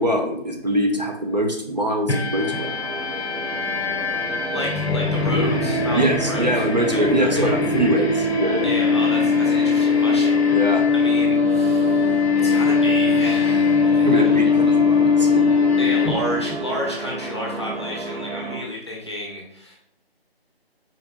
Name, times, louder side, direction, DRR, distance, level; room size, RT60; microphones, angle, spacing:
voice 1, 0.0-2.7 5.9-8.7 10.5-10.9 14.0-15.5, right 1 dB, 45° right, 2 dB, 0.5 m, -23 dB
sound 1, 2.1-16.6, left 5 dB, 80° left, 0.6 m, -20 dB
sound 2, 2.3-18.6, right 2 dB, 75° right, 1.0 m, -32 dB
voice 2, 4.5-7.6 8.6-10.5 10.9-14.4 15.8-19.8, equal, 25° left, -3 dB, 0.7 m, -31 dB
4.1 x 3.3 x 2.4 m, 0.73 s
figure-of-eight pair, 155°, 31 cm